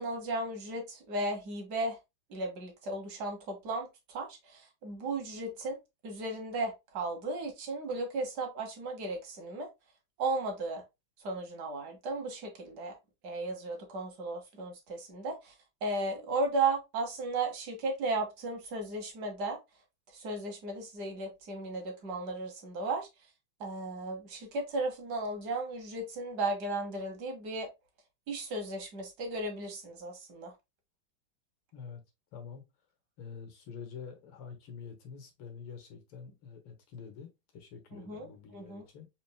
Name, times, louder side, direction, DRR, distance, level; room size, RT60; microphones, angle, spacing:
voice 1, 0.0-2.0 2.3-5.8 6.0-9.7 10.2-10.8 11.2-13.0 13.2-15.5 15.8-19.6 20.1-23.1 23.6-27.7 28.3-30.5 37.9-38.8, right 2 dB, 55° right, 1.6 m, -35 dB
voice 2, 32.3-32.6 33.2-39.1, left 6 dB, 80° left, 1.9 m, -47 dB
4.4 x 3.9 x 2.2 m
omnidirectional pair, 2.3 m